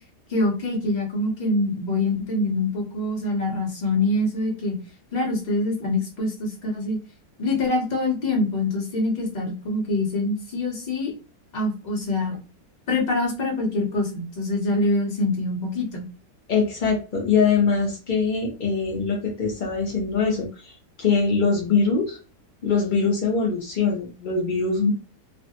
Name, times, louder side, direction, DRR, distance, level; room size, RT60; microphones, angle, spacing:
voice 1, 0.3-4.8 5.1-7.0 7.4-11.1 11.5-12.4 12.9-16.0, left 2 dB, 35° left, -1 dB, 0.8 m, -25 dB
voice 2, 16.5-22.2 22.6-24.9, left 5 dB, 65° left, -1 dB, 0.5 m, -23 dB
3.2 x 2.1 x 2.8 m, 0.34 s
omnidirectional pair, 1.7 m